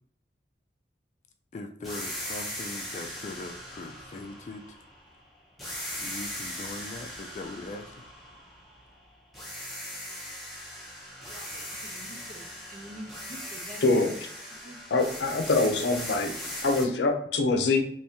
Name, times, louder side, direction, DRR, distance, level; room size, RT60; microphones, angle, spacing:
voice 1, 1.5-4.8 6.0-8.0, left 2 dB, 40° left, 4 dB, 0.3 m, -40 dB
sound 1, 1.8-5.1 5.6-9.0 9.3-16.8, equal, ahead, 0.8 m, -39 dB
voice 2, 11.2-14.2 14.6-14.8, equal, 50° right, 2 dB, 0.7 m, -46 dB
voice 3, 13.8-14.1 14.9-16.3 16.6-17.8, left 3 dB, 85° left, 6 dB, 0.6 m, -24 dB
3.5 x 3.1 x 2.8 m, 0.66 s
head